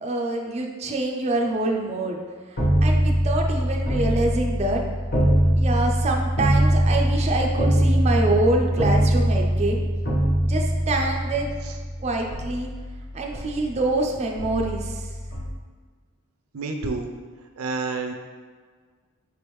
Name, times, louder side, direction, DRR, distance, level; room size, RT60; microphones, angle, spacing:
voice 1, 0.0-2.2 2.5-4.8 5.6-9.8 10.4-11.5 12.0-12.7 13.1-15.1, right 2 dB, 30° right, 1 dB, 0.4 m, -26 dB
sound 1, 2.6-13.9 14.4-15.5, equal, 50° left, 1.1 m, -23 dB
voice 2, 16.5-17.1 17.6-18.1, right 3 dB, 90° right, 4 dB, 0.5 m, -28 dB
4.6 x 3.4 x 3.0 m, 1.5 s
head